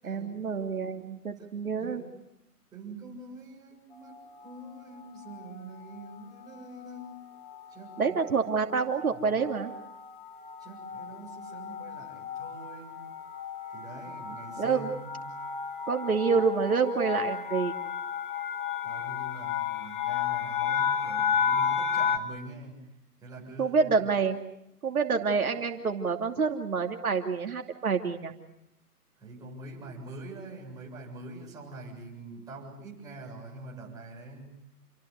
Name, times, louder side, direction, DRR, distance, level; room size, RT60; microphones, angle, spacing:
voice 1, 0.0-2.0 8.0-9.7 14.6-14.9 15.9-17.7 23.6-24.4 24.8-28.3, right 5 dB, 65° right, 4 dB, 2.8 m, -27 dB
voice 2, 1.4-2.2 2.7-7.2 7.7-8.2 8.7-8.8 9.1-9.4 10.6-13.0 13.7-15.5 18.8-22.9 23.2-24.0 29.2-34.6, right 2 dB, 10° right, -3 dB, 7.5 m, -45 dB
sound 1, 4.0-4.5 5.3-5.6 5.9-6.2 6.4-22.2, left 7 dB, 35° left, 2.2 m, -33 dB
28.5 x 23.5 x 8.2 m, 0.81 s
hypercardioid pair, 155°, 46 cm